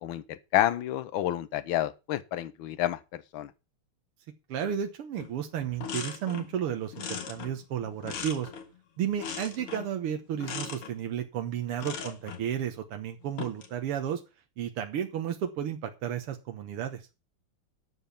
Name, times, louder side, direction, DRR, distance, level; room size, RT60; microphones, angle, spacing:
voice 1, 0.0-3.5, left 13 dB, 70° left, 1.6 m, -29 dB
voice 2, 4.5-8.5 9.0-14.2 14.6-17.0, right 9 dB, 85° right, 2.1 m, -33 dB
sound 1, 5.2-5.3 5.6-6.6 6.9-8.8 9.2-10.0 10.4-10.9 11.8-12.5 13.2-13.7, left 7 dB, 90° left, 2.6 m, -39 dB
12.0 x 7.3 x 5.7 m
omnidirectional pair, 2.4 m